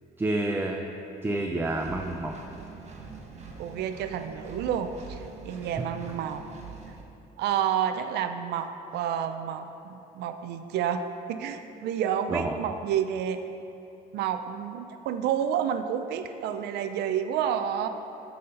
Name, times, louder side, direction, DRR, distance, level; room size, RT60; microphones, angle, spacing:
voice 1, 0.2-0.8 1.2-2.3 5.6-5.7 12.3-12.5, right 2 dB, 15° right, 2 dB, 0.5 m, -29 dB
Engine, 1.8-7.0, right 5 dB, 40° right, 1.2 m, -44 dB
voice 2, 3.6-6.4 7.4-13.4 14.1-17.9, right 9 dB, 75° right, 8 dB, 0.5 m, -30 dB
9.3 x 4.2 x 5.3 m, 2.8 s
cardioid pair, 110°, 17 cm